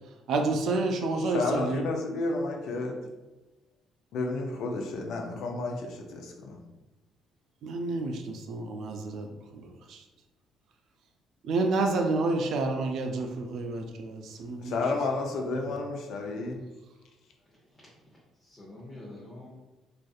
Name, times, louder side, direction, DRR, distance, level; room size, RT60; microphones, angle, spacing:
voice 1, 0.3-1.8 7.6-9.3 9.5-10.0 11.4-14.8 15.5-15.6, right 3 dB, 65° right, 4 dB, 0.3 m, -29 dB
voice 2, 1.2-3.0 4.1-6.6 14.6-16.5, left 3 dB, 70° left, 2 dB, 0.4 m, -31 dB
voice 3, 17.4-19.5, left 1 dB, 20° left, -6 dB, 0.8 m, -48 dB
2.4 x 2.4 x 2.3 m, 1.1 s
hypercardioid pair, 55°, 0 cm